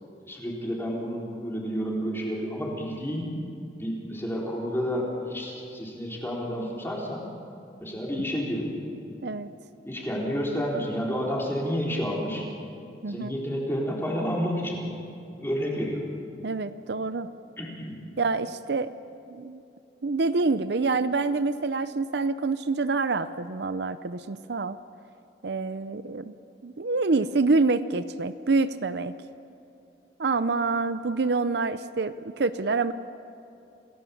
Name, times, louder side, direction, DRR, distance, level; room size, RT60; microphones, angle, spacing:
voice 1, 0.3-3.3 3.8-7.2 7.8-8.7 9.9-12.4 13.1-14.9 15.4-16.0 17.6-18.0, equal, 15° left, -3 dB, 4.0 m, -30 dB
voice 2, 13.0-13.3 16.4-17.3 18.2-18.9 19.3-19.6 20.0-24.8 25.4-26.4 26.6-29.1 30.2-32.9, right 3 dB, 65° right, 12 dB, 0.6 m, -26 dB
28.0 x 18.0 x 7.2 m, 2.6 s
head